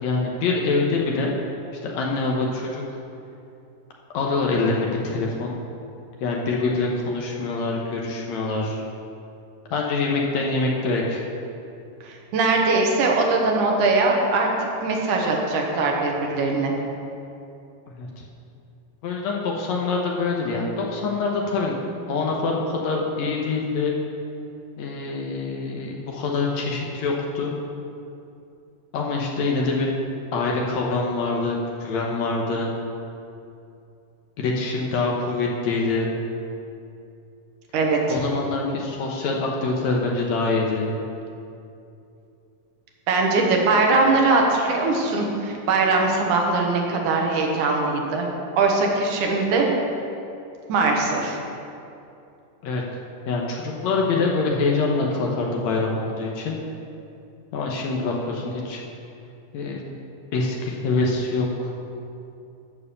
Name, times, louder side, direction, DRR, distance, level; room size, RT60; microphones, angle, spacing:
voice 1, 0.0-1.3 1.8-2.8 4.1-5.5 6.2-8.8 9.7-11.2 18.0-18.1 19.0-21.7 22.1-23.9 24.8-27.5 28.9-29.9 30.3-32.7 34.4-36.1 38.1-40.9 52.6-52.8 53.3-56.6 57.5-58.8 59.5-60.0 60.3-61.7, left 3 dB, 65° left, -1 dB, 2.0 m, -25 dB
voice 2, 12.0-14.5 14.8-16.7 37.7-38.2 43.1-48.3 48.6-49.7 50.7-51.4, right 3 dB, 70° right, 0 dB, 2.7 m, -21 dB
14.0 x 4.8 x 6.8 m, 2.6 s
omnidirectional pair, 3.8 m